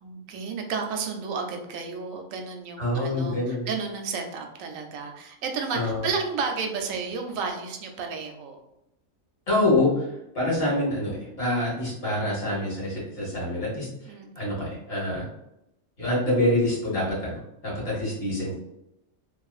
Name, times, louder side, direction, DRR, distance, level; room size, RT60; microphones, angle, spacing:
voice 1, 0.0-8.6 14.1-14.4, right 5 dB, 85° right, 3 dB, 1.0 m, -32 dB
voice 2, 2.8-3.7 5.7-6.1 9.5-15.3 16.0-18.5, left 1 dB, 50° left, -6 dB, 1.4 m, -26 dB
2.9 x 2.5 x 2.3 m, 0.84 s
omnidirectional pair, 1.4 m